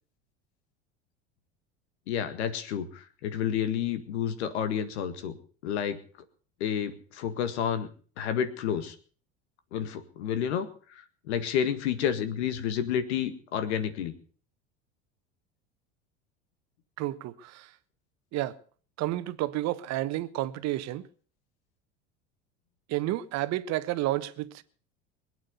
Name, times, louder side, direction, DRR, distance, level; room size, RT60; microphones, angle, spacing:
voice 1, 2.1-5.3 5.6-6.0 6.6-7.9 8.2-9.0 9.7-10.7 11.3-14.1, left 8 dB, 80° left, 1.9 m, -30 dB
voice 2, 17.0-17.7 18.3-18.6 19.0-21.0 22.9-24.6, right 15 dB, 55° right, 1.2 m, -31 dB
21.0 x 9.0 x 6.8 m
hypercardioid pair, 85°, 33 cm